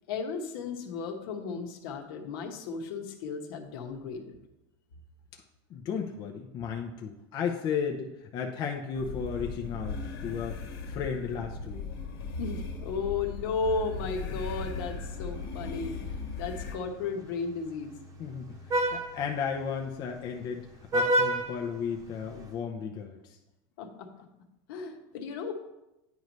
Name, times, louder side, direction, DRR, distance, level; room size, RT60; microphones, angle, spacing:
voice 1, 0.1-4.4 12.4-17.9 23.8-24.1 24.7-25.5, left 4 dB, 65° left, 4 dB, 1.1 m, -34 dB
voice 2, 5.7-11.9 18.2-23.4, left 6 dB, 35° left, 2 dB, 0.6 m, -34 dB
sound 1, 8.9-16.8, left 4 dB, 90° left, 1.3 m, -38 dB
Vehicle horn car horn honking, 14.4-22.5, right 1 dB, 25° right, 0.9 m, -34 dB
9.3 x 3.1 x 5.2 m, 0.93 s
supercardioid pair, 150°, 13 cm